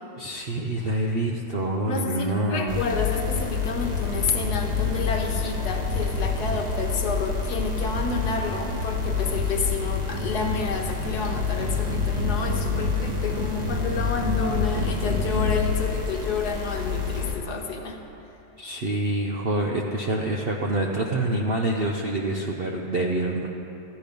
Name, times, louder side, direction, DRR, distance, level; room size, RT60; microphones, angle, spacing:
voice 1, 0.2-2.8 18.6-23.5, right 1 dB, 55° right, -1 dB, 0.6 m, -26 dB
voice 2, 1.9-18.0, left 4 dB, 65° left, 2 dB, 1.5 m, -30 dB
sound 1, 2.7-17.3, left 4 dB, 25° right, 1.3 m, -27 dB
14.0 x 10.0 x 5.2 m, 2.9 s
omnidirectional pair, 1.9 m